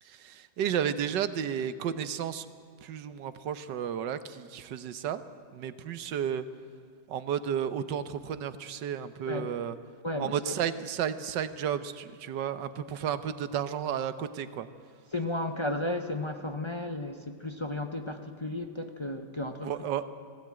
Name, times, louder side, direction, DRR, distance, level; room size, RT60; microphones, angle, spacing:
voice 1, 0.0-2.5 2.8-5.2 5.5-6.4 7.1-9.8 10.2-14.7 19.6-20.0, right 9 dB, 75° right, 12 dB, 1.5 m, -32 dB
voice 2, 10.0-10.5 15.1-19.7, left 1 dB, 30° left, 6 dB, 0.5 m, -34 dB
19.5 x 15.5 x 8.8 m, 2.3 s
omnidirectional pair, 1.9 m